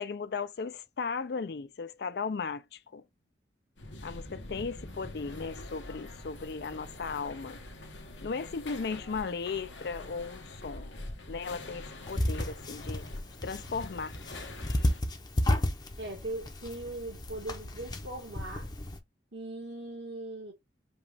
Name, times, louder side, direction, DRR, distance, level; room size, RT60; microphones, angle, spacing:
voice 1, 0.0-3.0 4.0-7.6 8.2-10.8 11.3-13.1 13.4-14.1, left 5 dB, 60° left, 0.4 m, -36 dB
sound 1, 3.8-15.0, left 1 dB, 85° left, 1.1 m, -44 dB
sound 2, 12.1-19.0, left 1 dB, 25° left, 0.6 m, -33 dB
voice 2, 16.0-18.7 19.3-20.5, right 2 dB, 70° right, 1.6 m, -39 dB
5.2 x 2.3 x 3.4 m
head